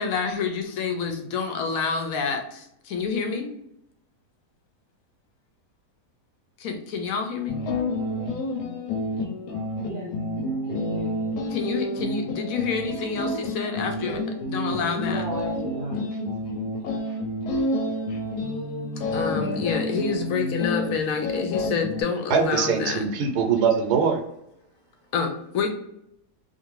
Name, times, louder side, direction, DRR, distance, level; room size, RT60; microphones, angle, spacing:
voice 1, 0.0-3.5 6.6-7.6 11.5-15.3 18.1-18.2 19.1-23.1 25.1-25.7, left 5 dB, 70° left, 5 dB, 0.9 m, -28 dB
sound 1, 7.5-22.0, left 1 dB, 90° left, 1.2 m, -29 dB
voice 2, 9.5-10.1 10.7-11.4 15.0-16.2 17.0-17.2, right 1 dB, 55° right, -5 dB, 0.5 m, -37 dB
voice 3, 22.3-24.2, right 6 dB, 80° right, 4 dB, 1.1 m, -22 dB
2.6 x 2.5 x 3.0 m, 0.77 s
omnidirectional pair, 1.7 m